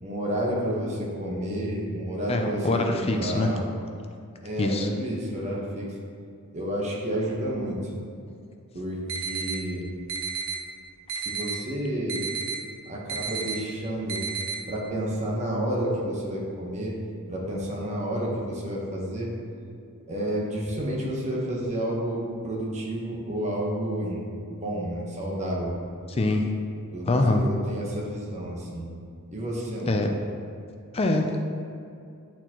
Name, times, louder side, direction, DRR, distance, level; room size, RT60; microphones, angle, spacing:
voice 1, 0.0-3.7 4.4-5.9 6.5-7.9 8.7-9.9 11.1-12.2 12.8-14.3 14.7-17.0 17.3-19.3 20.1-24.2 24.5-25.8 26.9-28.9 29.3-30.0, right 1 dB, 30° right, -3 dB, 1.1 m, -30 dB
voice 2, 2.3-3.5 4.6-4.9 8.3-8.4 26.1-26.5 27.1-27.4 29.9-30.1 30.9-31.4, left 2 dB, 25° left, 3 dB, 0.4 m, -24 dB
sound 1, 9.1-9.6 10.1-10.6 11.1-11.6 12.1-12.6 13.1-13.6 14.1-14.6, right 5 dB, 60° right, 0.7 m, -31 dB
8.7 x 4.3 x 2.9 m, 2.5 s
head